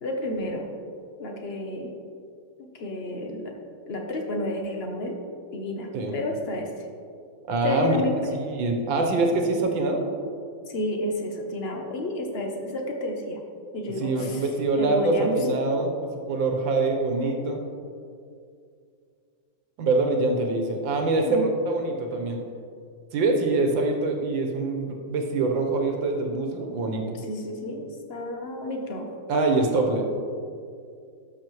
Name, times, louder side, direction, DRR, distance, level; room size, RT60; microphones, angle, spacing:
voice 1, 0.0-0.7 1.2-1.9 2.6-3.5 3.9-5.2 5.5-6.7 7.6-8.1 10.7-13.4 13.7-14.4 14.8-15.7 21.2-21.5 27.2-29.1, left 1 dB, 50° left, 2 dB, 0.8 m, -31 dB
voice 2, 7.5-8.0 8.3-10.0 14.0-15.9 16.2-17.6 19.8-22.4 23.1-27.0 29.3-30.0, right 3 dB, 85° right, 2 dB, 1.7 m, -24 dB
12.5 x 6.3 x 3.1 m, 2.4 s
omnidirectional pair, 2.1 m